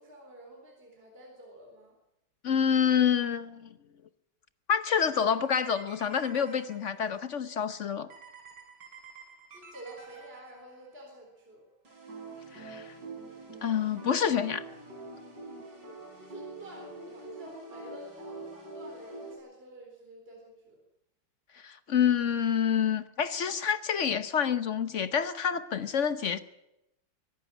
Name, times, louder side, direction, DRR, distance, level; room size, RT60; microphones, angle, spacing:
voice 1, 0.0-2.0 9.5-11.7 16.1-20.8, equal, 25° right, 4.2 m, -49 dB
voice 2, 2.4-3.7 4.7-8.1 12.5-12.9 13.6-14.6 21.6-26.4, left 7 dB, 55° left, 0.8 m, -27 dB
sound 1, 5.3-7.2 8.1-10.9 11.8-19.4, right 3 dB, 55° right, 5.6 m, -46 dB
23.0 x 11.5 x 9.9 m
omnidirectional pair, 2.2 m